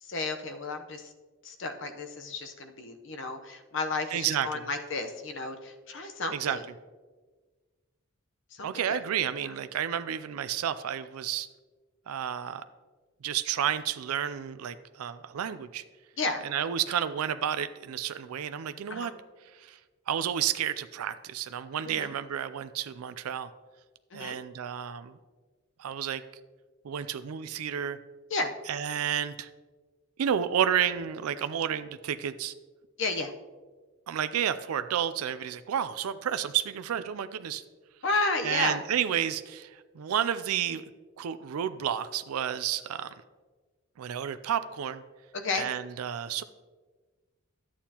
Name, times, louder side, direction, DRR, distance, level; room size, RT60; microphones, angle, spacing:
voice 1, 0.0-1.1 1.4-6.6 8.5-9.0 9.4-9.6 16.2-16.4 18.9-19.1 21.8-22.1 24.1-24.3 28.3-28.5 33.0-33.3 38.0-38.8 45.3-45.6, left 3 dB, 60° left, 6 dB, 0.8 m, -32 dB
voice 2, 4.1-4.6 6.3-6.6 8.6-11.5 12.1-12.6 13.2-15.8 16.4-19.1 19.6-19.8 20.1-23.5 24.1-25.2 25.8-26.2 26.8-28.0 28.7-29.5 30.2-32.5 34.1-37.6 38.4-40.8 41.2-43.1 44.0-45.0 45.5-46.4, right 9 dB, 90° right, 12 dB, 0.4 m, -31 dB
11.5 x 8.6 x 2.9 m, 1.3 s
head